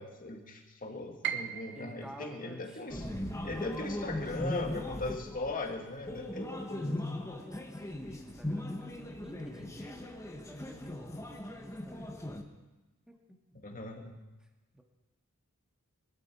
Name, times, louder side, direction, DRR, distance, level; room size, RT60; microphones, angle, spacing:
voice 1, 0.0-3.0 3.4-7.3 13.6-14.2, left 2 dB, 40° left, 2 dB, 2.0 m, -39 dB
Piano, 1.2-7.2 7.5-8.7 9.1-9.2 9.9-10.2, right 9 dB, 55° right, 0.9 m, -43 dB
voice 2, 1.7-2.8 3.4-4.8 7.2-12.4 13.1-13.2 14.4-14.5 14.7-14.8, right 1 dB, 5° right, 1 dB, 1.8 m, -52 dB
sound 1, 2.9-12.4, left 1 dB, 15° left, 1.3 m, -39 dB
22.5 x 13.0 x 4.5 m, 1.1 s
head